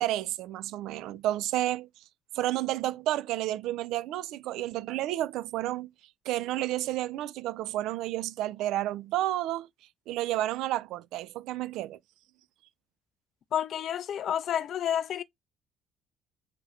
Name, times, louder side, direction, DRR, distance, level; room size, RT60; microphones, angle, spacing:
voice 1, 0.0-1.9 2.3-5.9 6.3-9.7 10.1-12.0, right 14 dB, 70° right, 0.4 m, -31 dB
voice 2, 13.5-15.2, left 10 dB, 55° left, 0.4 m, -30 dB
3.8 x 2.9 x 4.4 m
hypercardioid pair, 55°, 0 cm